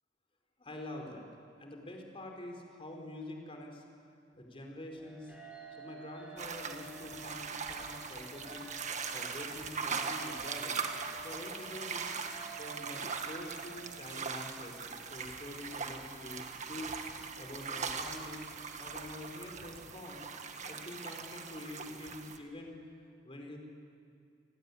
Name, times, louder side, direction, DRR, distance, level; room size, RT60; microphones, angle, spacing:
voice 1, 0.6-1.3 1.6-3.8 4.3-5.3 5.8-8.7 9.1-10.8 11.2-12.0 12.5-17.0 17.4-18.5 18.8-20.2 20.6-22.8 23.2-23.6, left 1 dB, 30° left, 2 dB, 4.5 m, -46 dB
sound 1, 5.0-14.0, right 3 dB, 10° right, 6.6 m, -52 dB
sound 2, 6.4-22.4, right 5 dB, 40° right, 1.7 m, -40 dB
28.5 x 19.0 x 9.8 m, 2.3 s
head